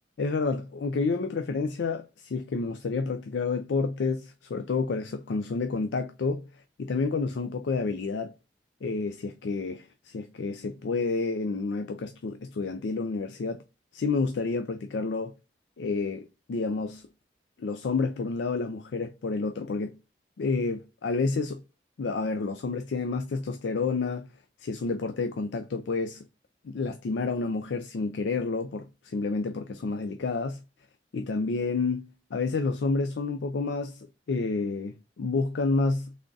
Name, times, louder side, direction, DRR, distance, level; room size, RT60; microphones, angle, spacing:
voice 1, 0.2-6.4 6.8-8.3 8.8-13.6 13.9-15.3 15.8-17.0 17.6-19.9 20.4-21.6 22.0-24.3 24.6-26.2 26.6-30.6 31.1-36.1, left 4 dB, 80° left, 0.4 m, -29 dB
3.8 x 3.4 x 2.4 m
head